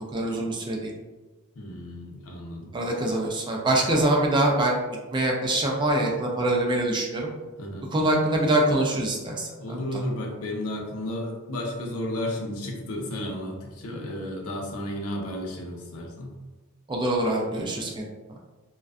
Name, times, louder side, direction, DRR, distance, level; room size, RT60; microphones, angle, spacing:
voice 1, 0.1-0.9 2.7-4.8 5.1-7.3 7.9-10.0 16.9-18.1, right 1 dB, 20° right, -1 dB, 0.3 m, -24 dB
voice 2, 1.5-2.7 7.6-7.9 9.6-16.3, left 1 dB, 85° left, 1 dB, 0.5 m, -33 dB
2.5 x 2.2 x 2.3 m, 1.2 s
head